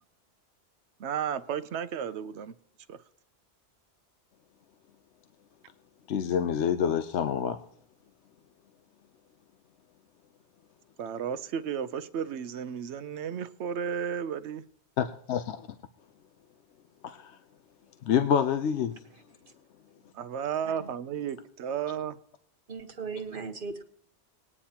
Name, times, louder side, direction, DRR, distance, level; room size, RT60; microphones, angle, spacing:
voice 1, 1.0-2.5 2.9-3.0 11.0-14.6 20.1-22.2, right 8 dB, 75° right, 0.9 m, -33 dB
voice 2, 6.1-7.6 15.0-15.6 17.0-17.4 18.0-19.0, left 8 dB, 80° left, 0.9 m, -27 dB
voice 3, 22.7-23.8, right 4 dB, 50° right, 1.4 m, -37 dB
20.0 x 9.7 x 2.9 m
omnidirectional pair, 1.2 m